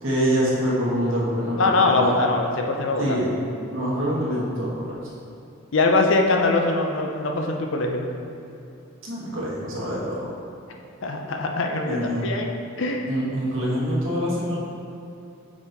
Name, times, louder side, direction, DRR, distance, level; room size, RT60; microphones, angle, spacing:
voice 1, 0.0-2.1 3.0-3.3 3.7-5.0 9.0-10.3 11.8-12.4 13.1-14.6, equal, 65° right, -6 dB, 1.4 m, -25 dB
voice 2, 1.6-3.2 5.7-8.1 11.0-12.5 12.8-13.1, left 3 dB, 60° left, 2 dB, 0.5 m, -22 dB
6.0 x 4.2 x 3.9 m, 2.8 s
head